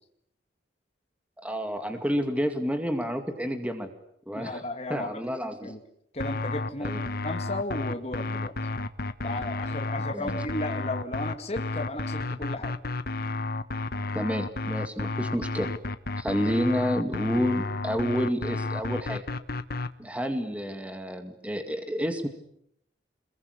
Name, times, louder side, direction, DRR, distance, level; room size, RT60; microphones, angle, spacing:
voice 1, 1.4-3.9 4.3-4.6 4.9-5.8 6.8-7.0 10.1-10.4 14.1-15.7 16.2-19.2 20.0-22.3, equal, 5° right, 6 dB, 2.2 m, -29 dB
voice 2, 4.3-5.2 5.6-5.8 6.1-6.9 7.2-8.5 9.2-12.7, left 2 dB, 35° left, 4 dB, 2.1 m, -34 dB
sound 1, 6.2-19.9, left 2 dB, 55° left, 1.2 m, -32 dB
28.0 x 22.0 x 9.8 m, 0.76 s
head